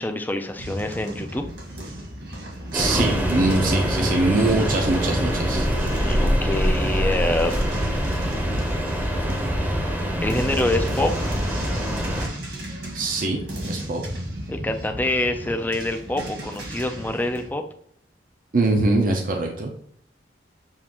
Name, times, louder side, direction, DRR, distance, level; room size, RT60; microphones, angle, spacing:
voice 1, 0.0-1.4 5.9-7.6 10.2-11.3 14.5-17.6, left 1 dB, 10° left, 6 dB, 0.4 m, -26 dB
sound 1, 0.6-17.5, right 1 dB, 75° right, 1.7 m, -35 dB
sound 2, 2.7-12.3, equal, 10° right, 0.8 m, -24 dB
voice 2, 2.7-5.7 12.9-14.0 18.5-19.7, right 2 dB, 50° right, 2 dB, 0.6 m, -23 dB
7.2 x 2.5 x 2.9 m, 0.64 s
head